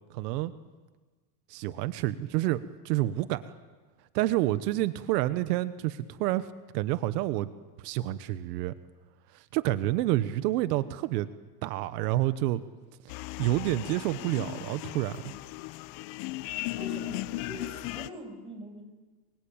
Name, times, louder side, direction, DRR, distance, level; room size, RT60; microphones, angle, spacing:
voice 1, 0.1-0.5 1.5-3.5 4.1-6.5 6.7-7.5 7.8-8.7 9.3-11.3 11.6-12.6 13.4-15.3, right 15 dB, 85° right, 13 dB, 1.3 m, -28 dB
sound 1, 13.1-18.1, left 19 dB, 60° left, 0.9 m, -37 dB
voice 2, 16.7-18.8, right 1 dB, 10° right, 3 dB, 6.4 m, -43 dB
28.5 x 23.5 x 9.0 m, 1.3 s
supercardioid pair, 145°, 47 cm